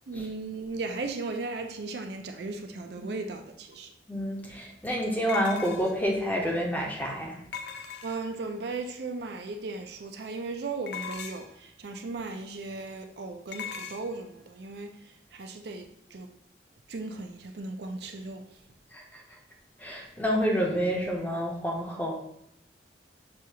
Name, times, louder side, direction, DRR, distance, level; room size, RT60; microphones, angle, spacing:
voice 1, 0.1-3.9 8.0-16.3 16.9-18.5, right 3 dB, 65° right, 0.4 m, -36 dB
sound 1, 3.7-3.8 5.3-6.1 7.5-8.4 10.9-11.6 13.5-14.0, left 6 dB, 70° left, 0.4 m, -38 dB
voice 2, 4.1-7.3 18.9-19.0 19.8-22.1, equal, 10° left, 0.6 m, -28 dB
6.2 x 2.4 x 2.8 m
head